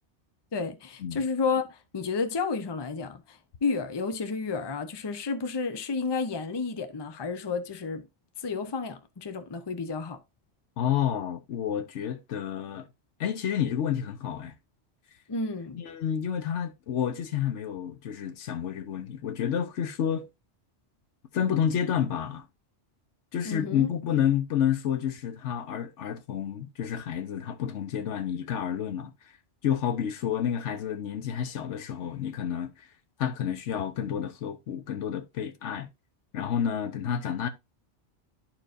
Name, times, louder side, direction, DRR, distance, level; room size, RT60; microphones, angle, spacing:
voice 1, 0.5-8.0 8.4-10.2 15.3-15.8 23.4-23.9, left 4 dB, 30° left, 0.6 m, -31 dB
voice 2, 10.8-12.9 13.2-14.5 15.7-20.3 21.3-22.5 23.3-29.1 29.6-32.9 33.2-35.9 36.3-37.5, left 9 dB, 75° left, 1.1 m, -29 dB
11.5 x 4.5 x 2.5 m
omnidirectional pair, 1.2 m